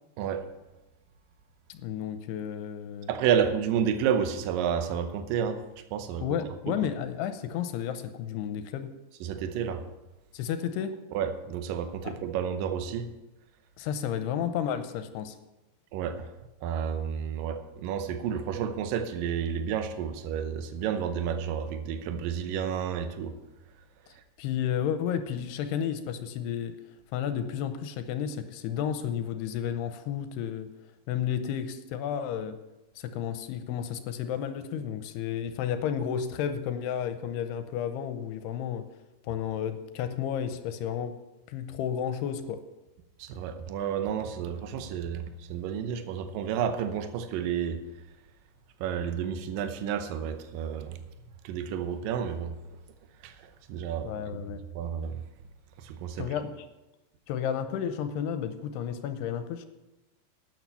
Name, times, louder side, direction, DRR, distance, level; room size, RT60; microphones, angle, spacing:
voice 1, 1.7-3.1 6.2-8.9 10.3-10.9 12.0-12.1 13.8-15.4 24.4-26.8 27.1-30.7 31.1-32.6 33.0-38.9 39.2-41.2 41.5-42.6 54.0-54.6 56.2-56.5 57.3-59.7, left 9 dB, 85° left, 9 dB, 2.7 m, -32 dB
voice 2, 3.1-5.6 5.9-6.3 6.7-6.8 9.2-9.8 11.1-13.1 15.9-16.3 16.6-23.4 43.2-47.8 48.8-51.0 51.4-52.6 53.2-54.5 54.8-55.2 55.8-56.3, right 8 dB, 75° right, 8 dB, 2.2 m, -31 dB
12.0 x 9.1 x 5.6 m, 1.0 s
omnidirectional pair, 4.9 m